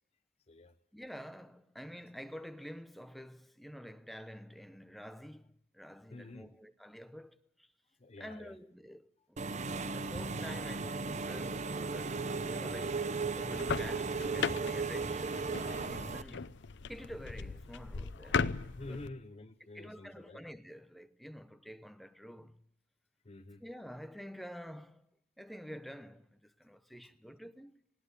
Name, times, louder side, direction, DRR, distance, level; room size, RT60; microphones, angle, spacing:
voice 1, 0.9-7.7 8.2-9.5 9.8-15.6 15.9-16.5 16.9-18.5 18.9-19.0 19.7-22.6 23.6-25.1 25.4-27.8, equal, ahead, 0.7 m, -49 dB
voice 2, 6.1-6.6 8.0-8.6 18.8-20.4 23.2-23.6, left 2 dB, 35° left, 0.7 m, -48 dB
Engine / Mechanisms, 9.4-16.2, right 4 dB, 40° right, 0.7 m, -36 dB
sound 1, 13.4-19.1, left 5 dB, 65° left, 0.7 m, -38 dB
20.0 x 16.5 x 8.1 m
head